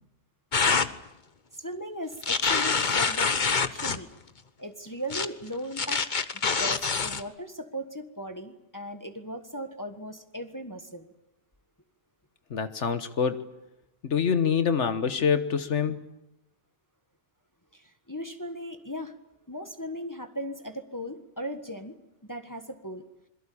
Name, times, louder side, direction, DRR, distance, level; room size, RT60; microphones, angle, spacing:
sound 1, 0.5-0.9 2.2-4.0 5.1-5.3 5.8-7.2, left 5 dB, 40° left, 1.2 m, -25 dB
voice 1, 1.5-4.1 4.6-6.1 6.4-11.1 17.7-19.1 19.5-22.0 22.3-23.0, equal, 15° left, 7 dB, 1.5 m, -38 dB
voice 2, 12.5-13.4 14.0-16.0, left 7 dB, 80° left, 9 dB, 1.6 m, -25 dB
27.0 x 22.5 x 8.7 m, 0.90 s
omnidirectional pair, 1.2 m